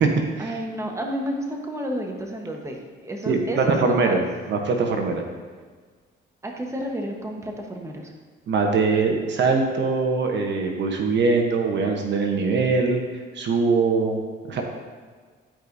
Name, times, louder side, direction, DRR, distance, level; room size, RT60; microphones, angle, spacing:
voice 1, 0.4-4.2 6.4-8.1, equal, 15° right, 1 dB, 1.1 m, -31 dB
voice 2, 3.3-4.2 4.5-5.2 8.5-13.0 13.3-14.6, right 4 dB, 65° right, 2 dB, 1.0 m, -22 dB
12.0 x 4.9 x 2.7 m, 1.5 s
cardioid pair, 90°, 20 cm